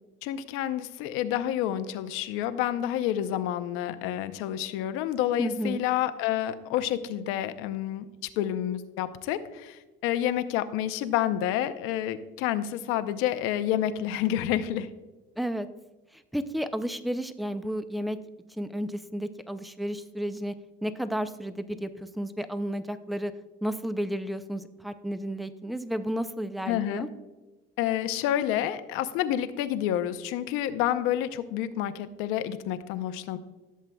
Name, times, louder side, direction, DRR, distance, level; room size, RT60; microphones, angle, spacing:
voice 1, 0.2-8.1 8.4-14.9 26.7-27.1 27.8-33.4, left 11 dB, 90° left, 11 dB, 0.6 m, -29 dB
voice 2, 5.4-5.8 15.4-15.7 16.3-18.2 18.6-20.5 20.8-23.3 23.6-27.1, equal, ahead, 11 dB, 0.4 m, -32 dB
14.5 x 7.4 x 2.2 m, 1.1 s
cardioid pair, 125°, 21 cm